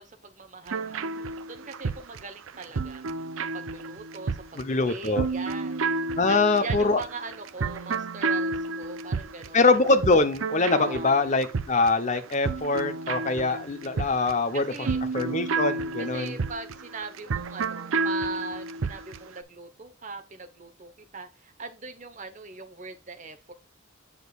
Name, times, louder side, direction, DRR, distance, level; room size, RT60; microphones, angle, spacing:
voice 1, 0.0-3.0 3.5-5.9 6.3-9.6 10.8-11.1 14.5-15.0 16.0-23.5, right 4 dB, 40° right, 1.0 m, -40 dB
sound 1, 0.7-19.3, right 3 dB, 80° right, 0.6 m, -31 dB
voice 2, 4.6-5.3 6.2-7.0 9.5-14.9 15.1-16.4, left 3 dB, 35° left, 0.8 m, -23 dB
7.5 x 6.4 x 2.4 m
head